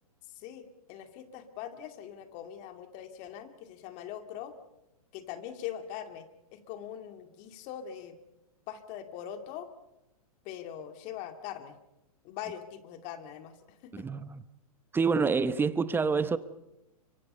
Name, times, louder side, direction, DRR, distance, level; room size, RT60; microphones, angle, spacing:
voice 1, 0.3-4.5 5.1-8.1 8.7-9.7 10.4-11.8 12.2-14.1, left 10 dB, 40° left, 8 dB, 2.4 m, -42 dB
voice 2, 13.9-14.4 14.9-16.4, right 5 dB, 10° right, 15 dB, 0.9 m, -27 dB
24.5 x 24.5 x 5.5 m, 0.93 s
hypercardioid pair, 120°, 19 cm